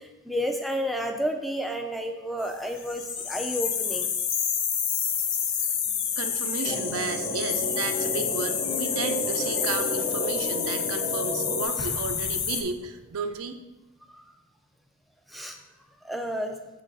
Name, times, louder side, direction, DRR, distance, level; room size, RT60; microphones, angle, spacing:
voice 1, 0.0-4.1 11.8-11.9 14.1-14.2 15.3-15.6 16.0-16.6, equal, ahead, 4 dB, 0.4 m, -31 dB
sound 1, 2.8-12.6, left 7 dB, 60° left, 0.7 m, -29 dB
voice 2, 5.7-13.6, right 4 dB, 75° right, 7 dB, 0.5 m, -33 dB
sound 2, 6.6-11.6, equal, 20° left, 0.9 m, -32 dB
Explosion, 11.8-13.4, equal, 75° left, 1.3 m, -41 dB
7.2 x 3.8 x 4.0 m, 1.0 s
head